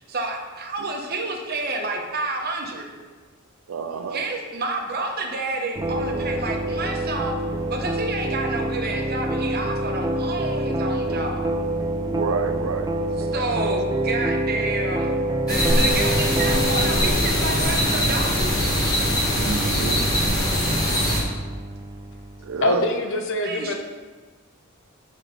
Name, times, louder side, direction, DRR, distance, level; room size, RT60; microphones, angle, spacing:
voice 1, 0.1-2.9 4.1-7.3 7.7-11.5 13.3-15.1 15.4-18.6 23.4-23.7, right 2 dB, 45° right, 2 dB, 0.8 m, -29 dB
voice 2, 3.7-4.2 12.1-12.9 19.3-20.0 22.4-22.8, right 5 dB, 80° right, 8 dB, 0.4 m, -28 dB
sound 1, 5.7-22.5, right 1 dB, 20° right, 0.4 m, -27 dB
sound 2, 15.5-21.2, equal, 20° left, 1.2 m, -22 dB
voice 3, 22.6-23.7, left 2 dB, 60° left, 5 dB, 0.6 m, -23 dB
5.9 x 3.2 x 5.0 m, 1.4 s
head